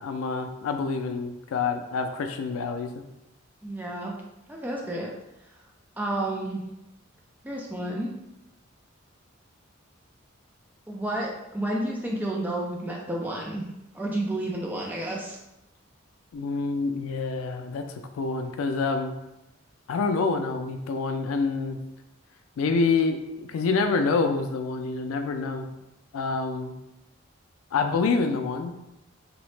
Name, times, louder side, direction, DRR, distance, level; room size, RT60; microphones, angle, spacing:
voice 1, 0.0-3.0 16.3-19.1 19.9-21.8 22.6-25.7 26.1-26.7 27.7-28.7, left 4 dB, 85° left, 6 dB, 0.3 m, -27 dB
voice 2, 3.6-4.2 4.5-5.1 6.0-6.6 7.4-8.1 10.9-13.6 13.9-15.4, right 1 dB, 10° right, -1 dB, 0.4 m, -30 dB
2.8 x 2.1 x 3.1 m, 0.92 s
head